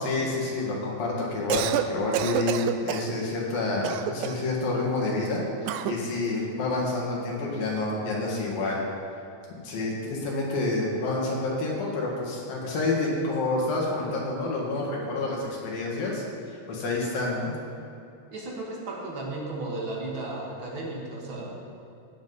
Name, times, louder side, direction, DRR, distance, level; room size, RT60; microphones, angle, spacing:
voice 1, 0.0-8.8 9.6-17.5, left 2 dB, 85° left, -3 dB, 3.7 m, -28 dB
Cough, 1.3-1.9 2.1-3.1 3.8-4.5 5.7-6.0, right 10 dB, 85° right, 2.2 m, -28 dB
voice 2, 18.3-21.6, right 2 dB, 50° right, -2 dB, 1.8 m, -34 dB
17.0 x 7.5 x 4.0 m, 2.5 s
omnidirectional pair, 4.0 m